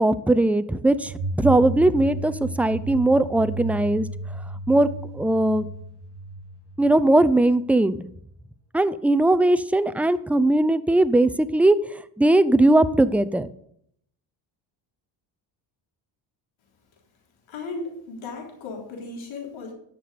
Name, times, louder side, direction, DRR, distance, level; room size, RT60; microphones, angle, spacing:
voice 1, 0.0-4.1 4.7-4.9 5.1-5.7 6.8-8.0 8.7-11.8 12.2-13.5, right 2 dB, 5° right, 13 dB, 0.5 m, -19 dB
giant dog I, 1.0-7.5, right 2 dB, 30° left, 4.8 m, -33 dB
voice 2, 17.5-19.7, left 3 dB, 75° left, 1 dB, 3.6 m, -35 dB
12.0 x 6.0 x 6.8 m, 0.70 s
cardioid pair, 85°, 48 cm